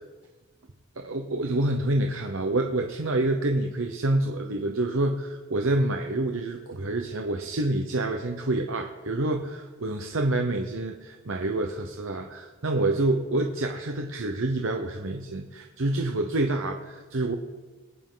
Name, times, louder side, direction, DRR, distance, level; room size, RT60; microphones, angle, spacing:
voice 1, 1.0-17.3, right 2 dB, 70° right, 3 dB, 0.9 m, -27 dB
19.5 x 9.8 x 3.9 m, 1.3 s
head